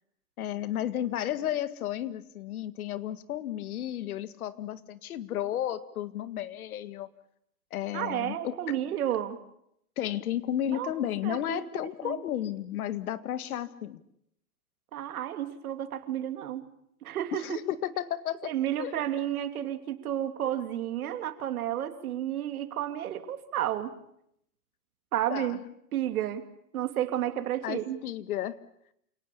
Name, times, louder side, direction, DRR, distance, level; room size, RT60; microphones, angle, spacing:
voice 1, 0.4-7.1 7.7-8.6 10.0-14.0 17.3-18.5 18.8-19.0 20.4-20.5 25.3-25.6 27.6-28.6, left 11 dB, 70° left, 14 dB, 1.8 m, -33 dB
voice 2, 7.9-9.4 10.7-10.9 11.2-12.2 14.9-16.7 17.0-17.6 18.4-23.9 25.1-25.6 25.9-26.4 26.7-28.0, right 11 dB, 70° right, 8 dB, 3.0 m, -31 dB
28.5 x 18.5 x 8.6 m, 0.76 s
hypercardioid pair, 145°, 45 cm